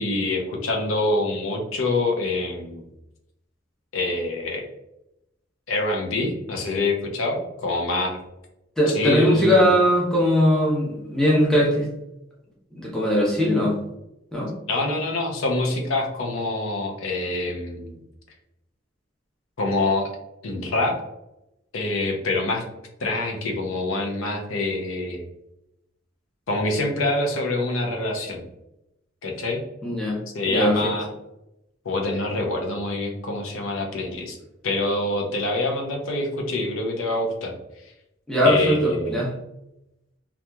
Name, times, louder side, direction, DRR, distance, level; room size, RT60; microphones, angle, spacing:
voice 1, 0.0-2.8 3.9-4.7 5.7-8.2 8.9-9.7 14.7-18.0 19.6-20.1 20.4-21.0 21.7-22.6 23.0-25.2 26.5-28.4 29.2-29.6 30.3-31.1 31.8-34.4 34.6-37.5 37.8-37.9 38.4-39.1, left 2 dB, 80° left, 1 dB, 0.6 m, -25 dB
voice 2, 8.8-11.9 12.7-13.8 14.3-14.5 29.8-30.2 30.5-30.9 38.3-39.3, equal, 5° left, -4 dB, 0.6 m, -20 dB
2.9 x 2.4 x 2.2 m, 0.87 s
head